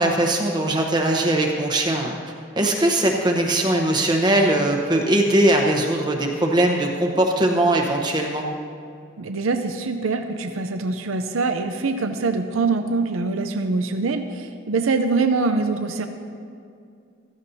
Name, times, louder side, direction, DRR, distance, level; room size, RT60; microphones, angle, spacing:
voice 1, 0.0-2.2 2.6-8.4, right 1 dB, 20° right, 1 dB, 0.9 m, -20 dB
voice 2, 9.2-16.1, right 3 dB, 90° right, 7 dB, 0.6 m, -24 dB
15.5 x 14.0 x 2.8 m, 2.4 s
head